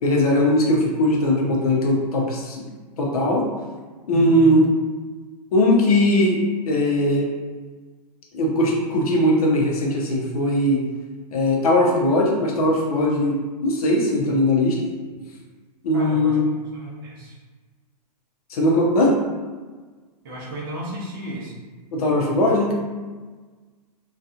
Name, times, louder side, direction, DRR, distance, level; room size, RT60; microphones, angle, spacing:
voice 1, 0.0-2.6 3.0-3.4 4.1-4.7 5.5-7.3 8.3-10.8 11.3-13.4 13.6-14.8 15.8-16.5 18.5-19.1 21.9-22.7, left 1 dB, 60° left, -2 dB, 0.7 m, -19 dB
voice 2, 4.1-4.5 15.9-16.4 16.7-17.3 20.2-21.5, equal, 35° right, -6 dB, 0.7 m, -33 dB
2.7 x 2.3 x 2.4 m, 1.4 s
hypercardioid pair, 170°, 21 cm